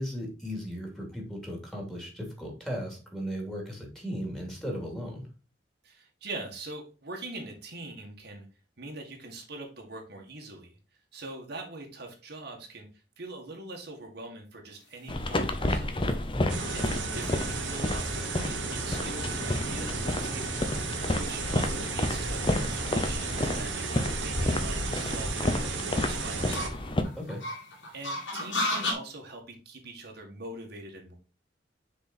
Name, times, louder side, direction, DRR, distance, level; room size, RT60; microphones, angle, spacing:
voice 1, 0.0-5.2 16.3-16.6 27.1-27.4, equal, ahead, 0 dB, 2.7 m, -36 dB
voice 2, 5.8-8.5 8.8-10.7 11.1-12.9 13.2-15.9 16.7-20.8 21.2-26.7 27.9-31.1, right 2 dB, 60° right, 1 dB, 1.8 m, -43 dB
sound 1, 15.0-28.9, left 1 dB, 85° left, 3.0 m, -39 dB
sound 2, 15.1-27.0, left 1 dB, 30° left, 0.8 m, -30 dB
sound 3, 16.5-26.7, right 5 dB, 85° right, 1.4 m, -35 dB
6.6 x 4.8 x 4.3 m, 0.34 s
head